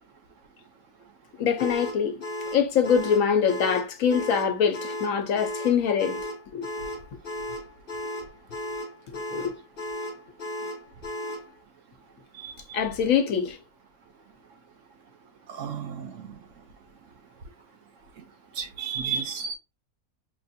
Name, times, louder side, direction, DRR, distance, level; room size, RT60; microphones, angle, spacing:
voice 1, 1.4-2.2 2.5-6.2 6.5-6.7 9.1-9.5 12.7-13.6, left 7 dB, 70° left, 1.1 m, -24 dB
sound 1, 1.6-11.5, left 1 dB, 45° left, 0.9 m, -35 dB
voice 2, 15.5-16.1 18.6-19.5, right 7 dB, 65° right, 1.0 m, -32 dB
6.0 x 2.5 x 2.6 m
omnidirectional pair, 1.5 m